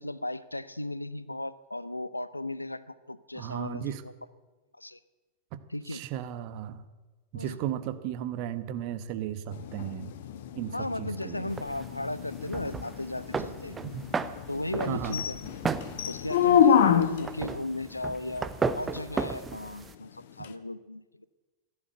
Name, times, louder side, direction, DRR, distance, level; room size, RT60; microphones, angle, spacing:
voice 1, 0.0-3.9 4.8-5.0 5.7-6.0 7.3-7.6 10.7-13.8 14.5-15.4 16.0-21.3, left 1 dB, 85° left, 17 dB, 0.6 m, -36 dB
voice 2, 3.3-4.0 5.5-5.6 5.9-6.9 7.3-10.1 10.5-11.5 13.8-14.0 14.9-15.2, right 10 dB, 45° right, 11 dB, 1.1 m, -35 dB
sound 1, 9.5-17.4 20.4-20.5, left 8 dB, 55° left, 1.0 m, -27 dB
sound 2, 11.5-19.9, right 5 dB, 15° right, 0.8 m, -35 dB
15.5 x 11.0 x 8.0 m, 1.2 s
figure-of-eight pair, 90°, 0 cm